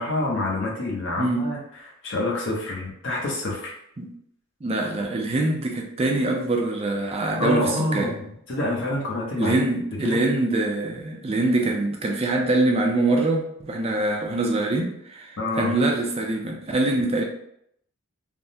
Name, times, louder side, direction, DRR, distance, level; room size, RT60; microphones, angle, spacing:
voice 1, 0.0-1.6 2.0-3.7 7.4-9.6 10.0-10.2 15.4-15.7, left 2 dB, 60° left, -2 dB, 0.8 m, -27 dB
voice 2, 4.6-8.1 9.4-17.2, right 2 dB, 30° right, 2 dB, 0.4 m, -24 dB
3.4 x 2.1 x 2.6 m, 0.73 s
head